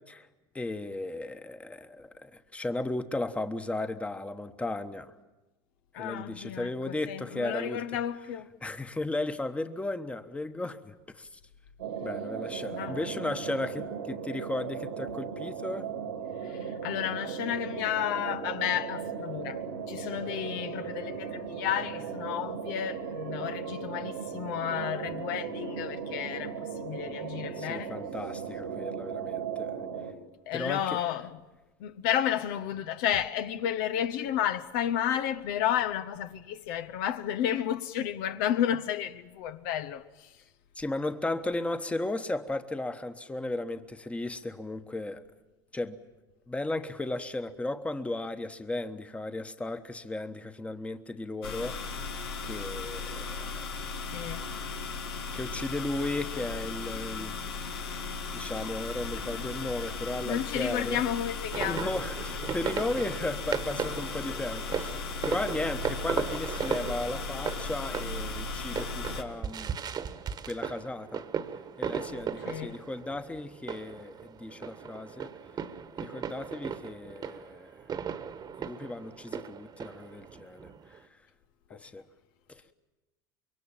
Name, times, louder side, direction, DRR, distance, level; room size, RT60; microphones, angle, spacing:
voice 1, 0.5-5.1 6.0-7.8 8.6-11.4 12.0-15.9 27.6-29.7 30.5-31.1 40.8-45.2 45.7-46.0 46.5-52.0 52.4-53.9 55.3-57.4 58.3-61.0 61.7-69.7 70.5-71.2 71.8-75.3 76.0-77.7 78.6-81.0 81.7-82.0 82.5-82.6, left 2 dB, 10° left, 1.2 m, -35 dB
voice 2, 5.9-8.5 12.7-13.1 16.4-19.6 19.9-27.9 30.5-31.4 31.8-40.3 54.1-54.5 60.2-61.9 72.4-72.7 81.7-81.8, left 10 dB, 65° left, 0.9 m, -32 dB
sound 1, 11.8-30.1, right 6 dB, 90° right, 2.9 m, -37 dB
sound 2, 51.4-69.2, left 4 dB, 85° left, 2.0 m, -36 dB
sound 3, 61.5-81.0, right 7 dB, 35° right, 1.4 m, -37 dB
25.5 x 23.0 x 7.3 m
hypercardioid pair, 90°, 12 cm